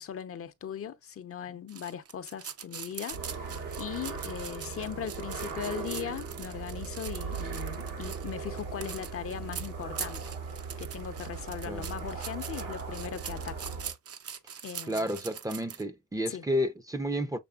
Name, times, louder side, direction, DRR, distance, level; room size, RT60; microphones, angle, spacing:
voice 1, 0.0-10.2 10.8-13.7 14.6-15.1 16.3-16.4, left 9 dB, 50° left, 0.7 m, -39 dB
sound 1, 1.7-15.8, right 8 dB, 50° right, 0.8 m, -42 dB
sound 2, 3.1-13.9, right 5 dB, 90° right, 2.6 m, -38 dB
voice 2, 14.9-17.4, equal, 10° right, 0.6 m, -31 dB
6.9 x 3.2 x 2.3 m
cardioid pair, 90°, 30 cm